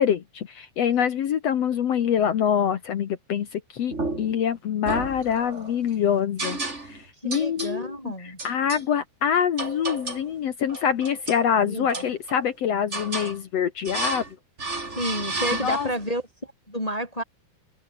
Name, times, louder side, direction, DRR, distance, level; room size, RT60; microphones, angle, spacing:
voice 1, 0.0-6.6 6.8-14.2 15.6-15.9, left 8 dB, 80° left, 1.4 m, -25 dB
sound 1, 3.9-4.4 4.9-5.7 6.4-7.0 7.3-7.8 8.4-8.9 9.6-10.3 10.7-11.5 11.9-12.5 12.9-13.4 13.9-14.3 14.6-16.1, right 2 dB, 15° right, 3.5 m, -32 dB
voice 2, 7.2-8.4 11.6-12.1 15.0-17.2, equal, 10° left, 2.7 m, -31 dB
open air
omnidirectional pair, 5.1 m